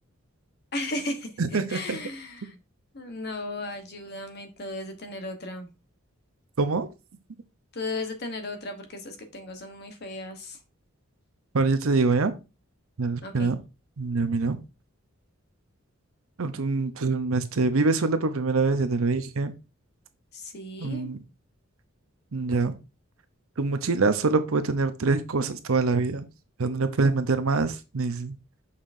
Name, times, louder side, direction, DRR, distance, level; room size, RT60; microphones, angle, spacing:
voice 1, 0.7-2.6 2.9-5.7 7.7-10.6 13.2-13.6 20.3-21.1, left 2 dB, 50° left, 1.1 m, -35 dB
voice 2, 1.4-2.0 6.6-6.9 11.5-12.3 13.0-13.6 14.0-14.6 16.4-19.5 20.8-21.2 22.3-22.7 23.6-26.3 26.6-28.3, right 3 dB, 80° right, 0.8 m, -25 dB
6.6 x 5.7 x 2.6 m
head